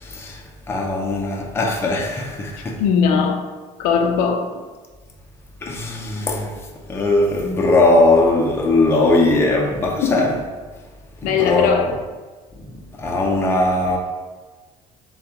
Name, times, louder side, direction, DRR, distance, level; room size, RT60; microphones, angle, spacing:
voice 1, 0.0-0.4 0.7-2.8 5.6-6.5 6.9-10.3 11.2-11.8 13.0-14.0, left 2 dB, 15° left, 0.6 m, -19 dB
voice 2, 2.8-3.5 3.8-4.6 10.0-10.3 11.2-12.0, left 6 dB, 85° left, 0.5 m, -19 dB
6.9 x 2.3 x 2.9 m
cardioid pair, 150°, 14 cm